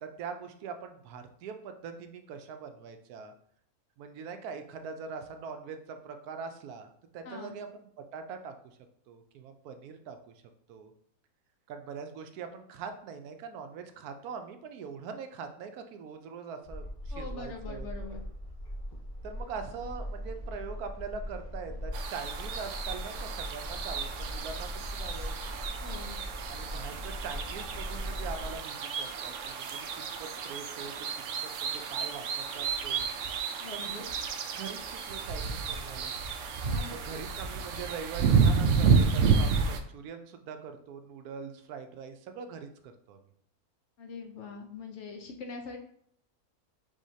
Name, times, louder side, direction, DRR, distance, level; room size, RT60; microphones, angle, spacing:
voice 1, 0.0-3.3 4.0-7.9 8.1-8.5 9.1-10.3 10.7-10.9 11.7-17.9 19.2-25.5 26.5-30.9 31.4-33.1 33.7-34.1 34.5-36.1 36.9-43.2, right 5 dB, 85° right, 7 dB, 1.1 m, -42 dB
voice 2, 7.2-7.6 17.1-18.2 25.8-26.2 33.6-34.1 36.6-37.0 44.0-45.8, left 4 dB, 60° left, 3 dB, 0.9 m, -43 dB
sound 1, 16.6-28.6, equal, 35° left, 0.9 m, -40 dB
sound 2, 21.9-39.8, right 5 dB, 65° right, 0.8 m, -30 dB
4.9 x 3.7 x 2.7 m, 0.67 s
omnidirectional pair, 1.6 m